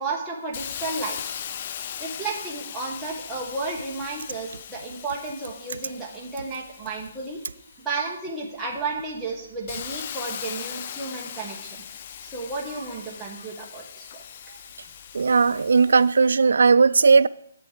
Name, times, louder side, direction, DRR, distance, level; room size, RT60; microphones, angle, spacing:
voice 1, 0.0-1.4 2.0-7.4 7.8-11.8 12.2-14.2, right 3 dB, 5° right, 1.2 m, -33 dB
Hiss, 0.5-8.1 8.6-16.4, left 9 dB, 40° left, 0.4 m, -39 dB
voice 2, 15.1-17.3, right 4 dB, 80° right, 0.3 m, -17 dB
8.3 x 7.2 x 5.0 m
hypercardioid pair, 160°, 0 cm